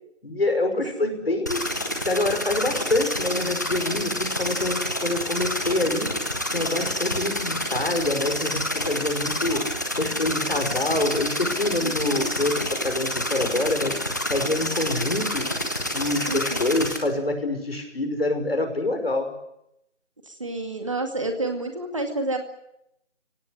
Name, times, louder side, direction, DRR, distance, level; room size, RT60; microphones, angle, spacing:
voice 1, 0.2-1.7 2.0-6.1 6.5-9.7 10.0-14.0 14.3-15.5 15.9-19.3, left 2 dB, 55° left, 6 dB, 5.6 m, -26 dB
sound 1, 1.5-17.0, left 1 dB, 15° left, 1.4 m, -28 dB
voice 2, 16.3-16.7 20.3-22.4, right 2 dB, 25° right, 5 dB, 2.2 m, -29 dB
25.0 x 17.5 x 10.0 m, 0.82 s
figure-of-eight pair, 175°, 35 cm